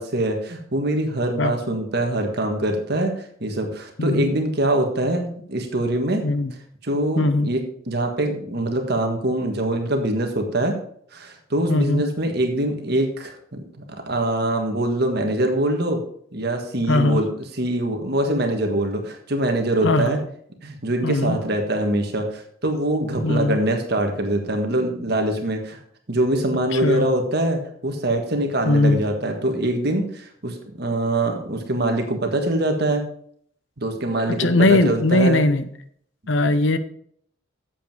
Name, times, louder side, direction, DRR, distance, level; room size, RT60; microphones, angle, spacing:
voice 1, 0.0-3.1 3.4-6.2 6.8-10.7 11.1-16.0 16.3-17.3 17.6-20.2 20.6-25.8 26.1-33.0 33.8-35.4, right 1 dB, 50° right, 4 dB, 1.5 m, -23 dB
voice 2, 4.0-4.3 6.2-6.5 7.2-7.5 11.7-12.0 16.9-17.2 19.8-20.2 21.0-21.4 23.2-23.6 26.7-27.1 28.6-29.0 34.4-35.7 36.3-36.8, left 2 dB, 65° left, 11 dB, 0.8 m, -19 dB
8.3 x 7.5 x 4.6 m, 0.63 s
head